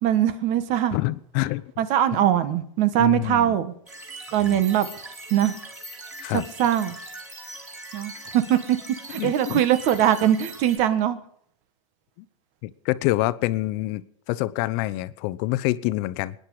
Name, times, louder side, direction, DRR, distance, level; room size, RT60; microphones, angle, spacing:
voice 1, 0.0-1.0 1.8-3.7 4.3-4.9 5.3-5.5 6.6-7.0 7.9-8.6 9.1-11.2, right 11 dB, 45° right, 12 dB, 1.5 m, -21 dB
voice 2, 0.9-1.6 3.0-3.5 4.4-4.6 6.2-6.4 9.1-9.6 12.6-14.0 14.3-16.3, left 18 dB, 50° left, 15 dB, 0.9 m, -26 dB
sound 1, 3.9-10.8, right 2 dB, 10° right, 4.0 m, -41 dB
24.5 x 10.5 x 4.9 m, 0.68 s
hypercardioid pair, 115°, 17 cm